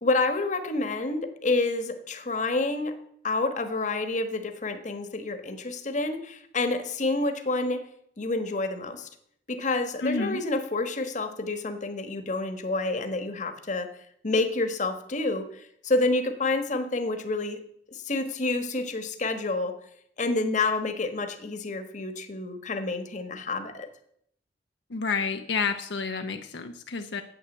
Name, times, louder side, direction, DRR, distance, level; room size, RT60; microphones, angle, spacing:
voice 1, 0.0-3.0 3.2-7.8 8.2-9.1 9.5-13.9 14.2-17.6 17.9-19.8 20.2-23.9, left 2 dB, 45° left, 9 dB, 1.3 m, -28 dB
voice 2, 10.0-10.4 24.9-27.2, left 4 dB, 75° left, 6 dB, 0.7 m, -29 dB
9.2 x 7.9 x 7.7 m, 0.70 s
head